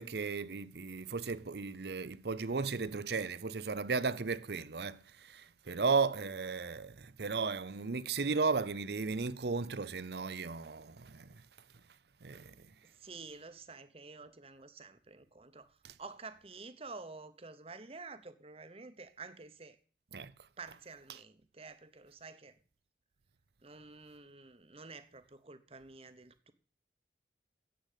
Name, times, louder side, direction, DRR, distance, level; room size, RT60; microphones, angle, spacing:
voice 1, 0.0-5.0 5.3-11.3 12.2-12.5 20.1-20.3, right 4 dB, 65° right, 0.7 m, -35 dB
voice 2, 12.8-15.7 16.0-19.8 20.6-22.6 23.6-26.5, right 4 dB, 35° right, 1.0 m, -50 dB
10.0 x 8.1 x 8.2 m
head